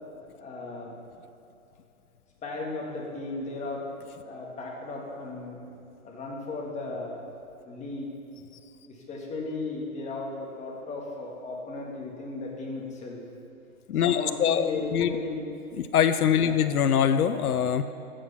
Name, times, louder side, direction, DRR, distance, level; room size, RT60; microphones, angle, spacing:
voice 1, 0.4-1.0 2.4-3.9 4.2-5.6 6.0-7.2 7.7-8.1 8.9-13.2 14.0-15.4 16.4-16.6, left 3 dB, 15° left, -1 dB, 1.8 m, -35 dB
voice 2, 13.9-15.1 15.9-17.8, left 8 dB, 85° left, 10 dB, 0.7 m, -23 dB
15.5 x 6.5 x 5.6 m, 2.9 s
hypercardioid pair, 140°, 43 cm